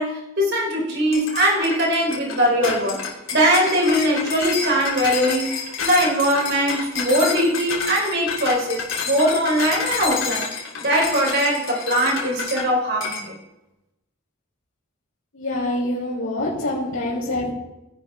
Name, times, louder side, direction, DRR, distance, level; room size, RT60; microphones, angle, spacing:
voice 1, 0.0-3.0 3.3-10.5 10.8-13.3, equal, 55° right, 0 dB, 3.8 m, -21 dB
sound 1, 1.1-12.7 13.0-13.3, left 5 dB, 65° left, 3.0 m, -29 dB
voice 2, 15.3-17.5, left 1 dB, 80° left, -8 dB, 3.7 m, -25 dB
18.5 x 10.5 x 3.6 m, 0.97 s
head